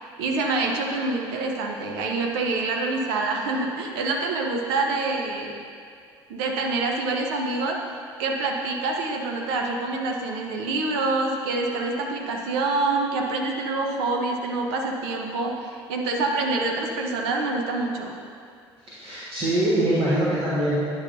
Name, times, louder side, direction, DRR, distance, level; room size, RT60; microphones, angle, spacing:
voice 1, 0.0-5.5 6.3-7.8 8.2-18.1, right 3 dB, 70° right, 1 dB, 0.9 m, -26 dB
voice 2, 18.9-20.8, right 1 dB, 40° right, -9 dB, 1.5 m, -23 dB
10.5 x 5.2 x 2.7 m, 2.2 s
figure-of-eight pair, 55°, 14 cm